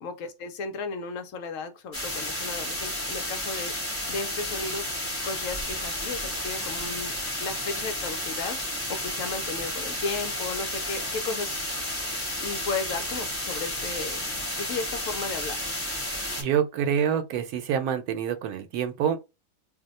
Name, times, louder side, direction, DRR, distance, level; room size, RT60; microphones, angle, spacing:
voice 1, 0.0-3.7 4.1-4.8 5.2-7.1 7.4-8.6 8.9-11.9 12.4-14.3 14.6-15.6, left 4 dB, 70° left, 0.9 m, -34 dB
sound 1, 1.9-16.4, left 1 dB, 10° left, 0.9 m, -32 dB
voice 2, 16.4-19.2, right 8 dB, 85° right, 1.1 m, -26 dB
2.6 x 2.1 x 4.0 m
omnidirectional pair, 1.5 m